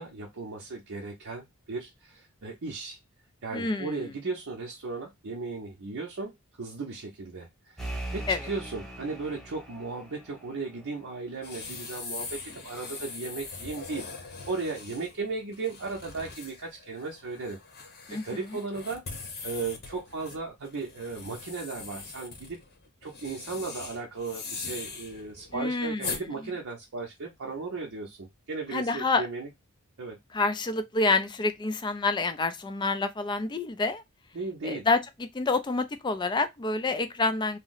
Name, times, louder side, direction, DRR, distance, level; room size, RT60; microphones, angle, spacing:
voice 1, 0.0-3.0 3.4-17.6 18.1-19.0 19.4-22.6 23.0-29.5 30.0-30.2 34.3-34.8, right 3 dB, 60° right, 0.6 m, -36 dB
voice 2, 3.5-4.1 8.3-8.4 18.1-18.6 25.5-26.4 28.7-29.3 30.3-34.0 34.6-37.6, left 3 dB, 20° left, 0.3 m, -28 dB
sound 1, 7.8-11.3, right 1 dB, 5° left, 1.1 m, -40 dB
sound 2, 11.4-26.2, left 4 dB, 45° left, 0.8 m, -41 dB
2.8 x 2.0 x 3.8 m
head